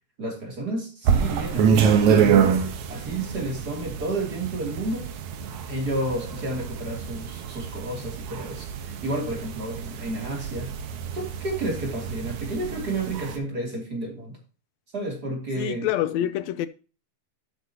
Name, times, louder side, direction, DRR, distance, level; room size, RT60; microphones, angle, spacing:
voice 1, 0.2-5.1 5.7-10.7 11.1-14.4 14.9-15.9, right 1 dB, 30° right, 3.2 m, -31 dB
sound 1, 1.1-13.4, right 7 dB, 70° right, 2.5 m, -26 dB
voice 2, 15.6-16.7, left 12 dB, 75° left, 1.7 m, -26 dB
12.0 x 8.2 x 2.9 m
omnidirectional pair, 3.6 m